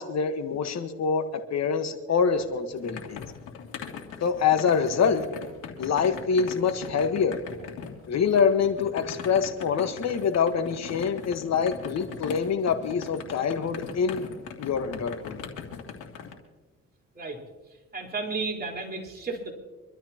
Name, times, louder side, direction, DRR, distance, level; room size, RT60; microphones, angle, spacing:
voice 1, 0.0-3.2 4.2-5.3 5.8-7.4 8.1-14.2 14.6-15.4, left 6 dB, 60° left, 7 dB, 1.4 m, -25 dB
sound 1, 2.3-16.3, left 7 dB, 85° left, 2.8 m, -40 dB
voice 2, 17.9-19.5, right 3 dB, 30° right, -2 dB, 4.4 m, -32 dB
26.0 x 13.0 x 3.0 m, 1.2 s
cardioid pair, 90°, 30 cm